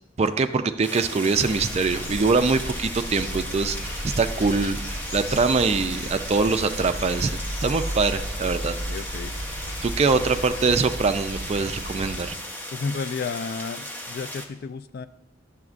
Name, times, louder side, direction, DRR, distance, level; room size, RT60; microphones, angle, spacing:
voice 1, 0.2-8.8 9.8-12.4, right 4 dB, 35° right, 9 dB, 0.4 m, -23 dB
sound 1, 0.8-14.5, left 1 dB, 10° left, 0.6 m, -37 dB
sound 2, 1.3-12.3, equal, 75° left, 3.1 m, -34 dB
voice 2, 8.9-9.4 12.7-15.1, left 5 dB, 55° left, 11 dB, 0.3 m, -32 dB
10.5 x 6.9 x 2.5 m, 0.94 s
head